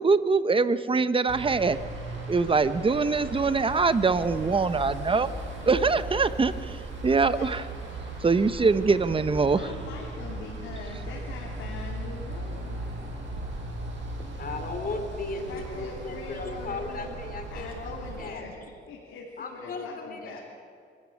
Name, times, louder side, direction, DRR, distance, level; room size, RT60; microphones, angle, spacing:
voice 1, 0.0-1.8 2.3-5.3 5.7-6.8 7.0-7.6 8.2-9.6, right 4 dB, 25° right, 13 dB, 1.0 m, -23 dB
sound 1, 1.3-18.3, right 2 dB, 70° right, 6.1 m, -37 dB
voice 2, 7.1-7.6 9.5-12.9 15.3-17.2 17.5-18.5 18.9-20.4, left 4 dB, 85° left, -2 dB, 3.3 m, -42 dB
voice 3, 14.4-18.5 19.4-20.4, left 3 dB, 45° left, 5 dB, 3.6 m, -36 dB
24.5 x 15.0 x 8.7 m, 2.4 s
cardioid pair, 90°, 20 cm